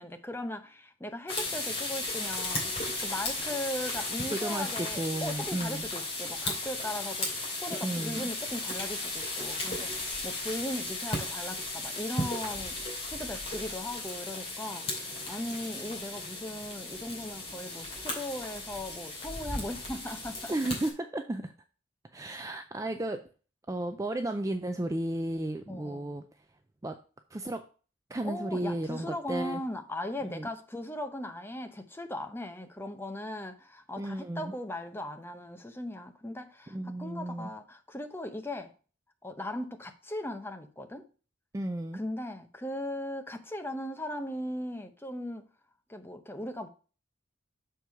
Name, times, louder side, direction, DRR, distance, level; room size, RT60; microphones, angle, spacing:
voice 1, 0.0-12.8 13.1-14.9 15.3-20.5 25.7-26.2 28.2-38.7 39.2-41.0 41.9-45.5 45.9-46.7, left 1 dB, 10° left, 0.7 m, -38 dB
sound 1, 1.3-20.9, left 2 dB, 30° left, 2.6 m, -35 dB
voice 2, 4.3-5.9 7.7-8.2 20.5-21.5 22.1-23.2 23.7-26.2 26.8-27.0 27.3-27.6 28.1-29.6 30.3-30.5 34.0-34.5 36.7-37.5 41.5-42.0, right 1 dB, 15° right, 0.4 m, -33 dB
6.7 x 4.6 x 4.7 m
head